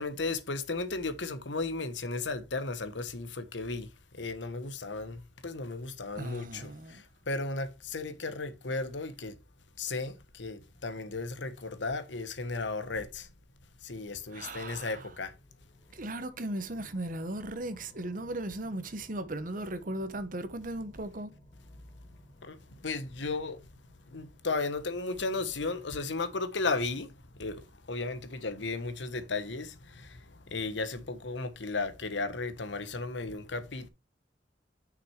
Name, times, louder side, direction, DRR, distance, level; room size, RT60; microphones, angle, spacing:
voice 1, 0.0-3.9 4.2-9.3 9.8-13.3 13.8-15.3 22.4-22.6 22.8-23.6 24.1-27.1 27.4-30.2 30.5-33.9, left 3 dB, 90° left, 1.2 m, -35 dB
voice 2, 6.2-7.0 14.3-15.1 15.9-21.3, right 1 dB, 50° right, 1.0 m, -37 dB
sound 1, 14.1-26.6, left 1 dB, 35° left, 3.3 m, -59 dB
6.4 x 6.1 x 4.7 m
head